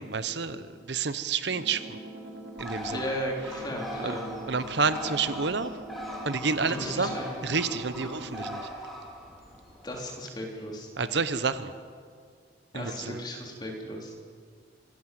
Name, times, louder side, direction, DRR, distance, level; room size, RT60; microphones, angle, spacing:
voice 1, 0.0-2.0 2.6-3.1 4.0-4.2 4.5-5.7 6.2-7.2 7.4-8.7 11.0-11.7 12.7-13.2, right 4 dB, 70° right, 12 dB, 0.9 m, -29 dB
sound 1, 1.5-8.6, right 1 dB, 85° right, 3.3 m, -44 dB
Bird, 2.6-10.0, equal, ahead, 3.7 m, -40 dB
voice 2, 2.9-4.3 6.6-7.3 8.0-8.1 9.8-10.9 12.7-14.1, equal, 20° left, 0 dB, 3.6 m, -35 dB
25.5 x 17.0 x 7.7 m, 2.1 s
head